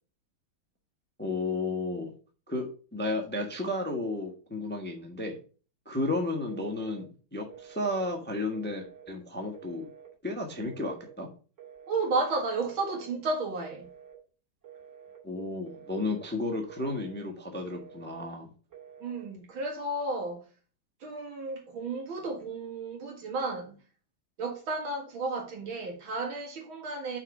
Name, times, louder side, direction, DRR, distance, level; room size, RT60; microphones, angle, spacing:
voice 1, 1.2-2.1 2.5-5.4 5.9-9.8 10.2-11.3 15.2-18.5, left 2 dB, 5° left, 0.9 m, -33 dB
Telephone, 6.5-7.1 7.5-8.1 8.5-9.1 9.5-10.1 10.6-11.1 11.6-12.2 12.6-13.2 13.6-14.2 14.6-15.2 15.7-16.2 16.7-17.3 17.7-18.3 18.7-19.3, right 8 dB, 35° right, 2.7 m, -50 dB
voice 2, 11.9-13.9 19.0-20.4 21.0-23.8 24.4-27.2, right 3 dB, 75° right, 2.8 m, -33 dB
6.0 x 4.8 x 5.9 m
omnidirectional pair, 2.2 m